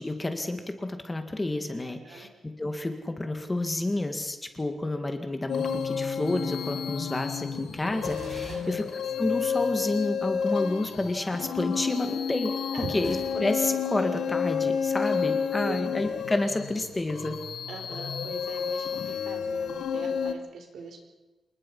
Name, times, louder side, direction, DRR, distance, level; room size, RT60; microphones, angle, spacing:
voice 1, 0.0-2.3 2.6-8.8 9.2-12.5 12.9-17.4, left 2 dB, 15° left, 6 dB, 2.0 m, -30 dB
voice 2, 1.8-2.3 8.5-8.8 12.7-12.9 15.6-15.8 17.7-21.0, right 5 dB, 75° right, 4 dB, 4.5 m, -41 dB
sound 1, 5.5-20.3, left 6 dB, 85° left, 1.7 m, -30 dB
Gunshot gunfire, 8.0-9.7 13.0-13.2, right 3 dB, 50° right, 6.2 m, -45 dB
27.5 x 20.5 x 5.6 m, 1.1 s
wide cardioid pair, 160°, 0 cm